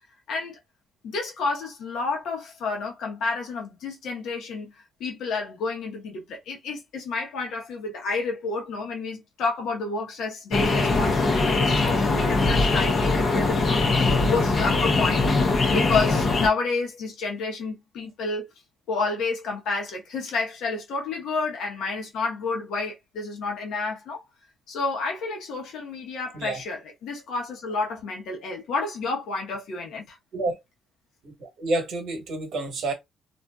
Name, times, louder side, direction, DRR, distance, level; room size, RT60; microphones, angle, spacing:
voice 1, 0.3-0.6 1.0-4.7 5.0-13.9 14.2-18.5 18.9-24.2 24.7-30.2, left 4 dB, 75° left, 1.0 m, -30 dB
sound 1, 10.5-16.5, left 3 dB, 45° left, 0.8 m, -21 dB
voice 2, 31.2-32.9, right 2 dB, 70° right, 1.1 m, -29 dB
2.6 x 2.5 x 2.3 m
cardioid pair, 90°, 0 cm